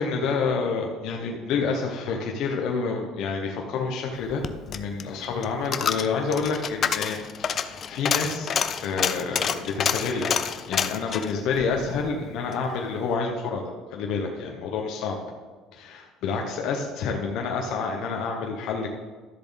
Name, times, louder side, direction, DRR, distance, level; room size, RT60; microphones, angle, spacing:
voice 1, 0.0-8.5 8.8-10.4 10.7-15.2 15.7-18.9, left 5 dB, 65° left, 1 dB, 1.2 m, -28 dB
Coin (dropping), 4.2-12.6 13.0-13.1, left 7 dB, 40° left, 0.5 m, -28 dB
12.5 x 7.1 x 4.1 m, 1.4 s
cardioid pair, 115°, 0 cm